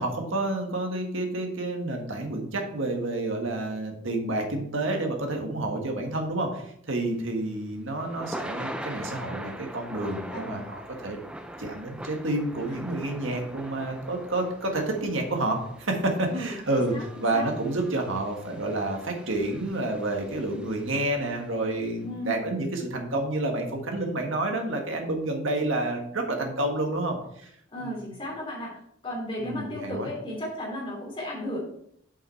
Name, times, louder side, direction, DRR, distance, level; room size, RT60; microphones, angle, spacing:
voice 1, 0.0-6.6 6.9-11.2 11.6-16.9 17.2-27.5 27.8-27.9 29.4-30.1, right 2 dB, 75° right, 3 dB, 1.7 m, -29 dB
Thunder / Rain, 7.2-21.4, right 1 dB, 5° right, 0.5 m, -42 dB
voice 2, 10.3-10.6 12.7-12.8 16.3-17.5 22.0-22.5 27.7-28.7 29.0-31.6, left 1 dB, 25° left, -3 dB, 2.8 m, -35 dB
7.2 x 6.0 x 4.4 m, 0.70 s
head